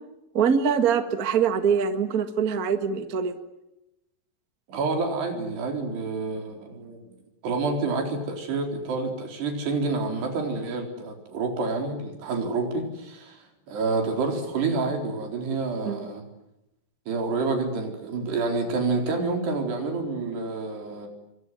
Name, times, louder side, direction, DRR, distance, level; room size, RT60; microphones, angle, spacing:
voice 1, 0.3-3.3 15.8-16.0, right 7 dB, 55° right, 8 dB, 1.0 m, -23 dB
voice 2, 4.7-7.1 7.4-16.2 17.1-21.1, right 3 dB, 80° right, 3 dB, 6.3 m, -28 dB
26.0 x 24.0 x 9.6 m, 0.91 s
omnidirectional pair, 4.8 m